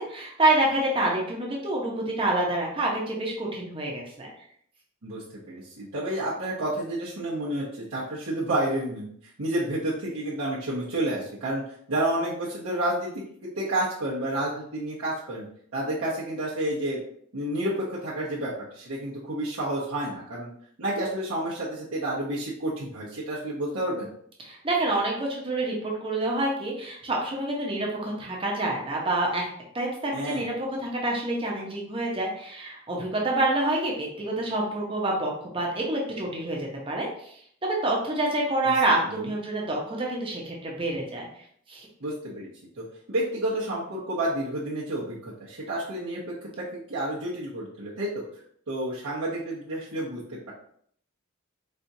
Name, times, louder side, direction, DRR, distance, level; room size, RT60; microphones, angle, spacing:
voice 1, 0.0-4.3 24.4-29.5 29.7-36.6 36.9-41.3 41.7-41.9, right 2 dB, 25° right, -2 dB, 0.7 m, -27 dB
voice 2, 5.0-11.6 11.9-13.1 13.4-15.5 15.7-17.0 17.3-20.5 20.8-24.1 30.1-30.5 38.6-38.7 39.2-39.3 42.0-42.5 42.8-46.2 46.6-48.3 48.7-50.5, right 1 dB, 75° right, -9 dB, 0.9 m, -30 dB
4.3 x 2.4 x 2.7 m, 0.64 s
head